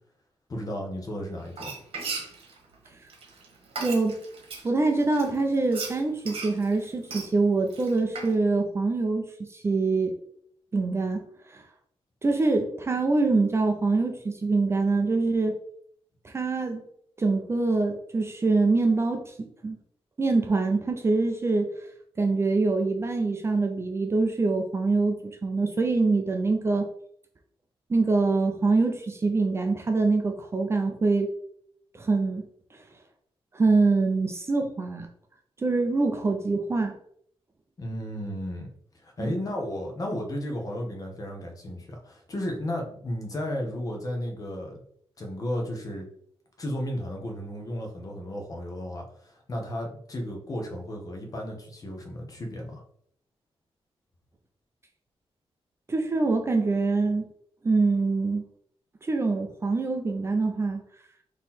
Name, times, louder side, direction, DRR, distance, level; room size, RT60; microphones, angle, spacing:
voice 1, 0.5-1.8 37.8-38.7 38.9-44.8 45.2-46.1 46.6-52.8, left 1 dB, 35° left, 1 dB, 0.9 m, -34 dB
Frying (food), 1.5-4.7 5.1-8.3, right 4 dB, 65° right, 1.4 m, -37 dB
voice 2, 3.8-4.2 4.6-10.1 10.7-11.2 11.5-11.6 12.2-15.6 16.2-16.8 17.2-19.8 20.2-21.7 22.2-26.9 27.9-31.3 31.9-32.4 32.7-32.8 33.5-35.1 35.6-36.9 39.2-39.3 55.9-57.3 57.6-58.4 59.0-60.8, right 3 dB, 25° right, 4 dB, 0.5 m, -24 dB
3.8 x 3.0 x 4.2 m, 0.67 s
wide cardioid pair, 160°, 10 cm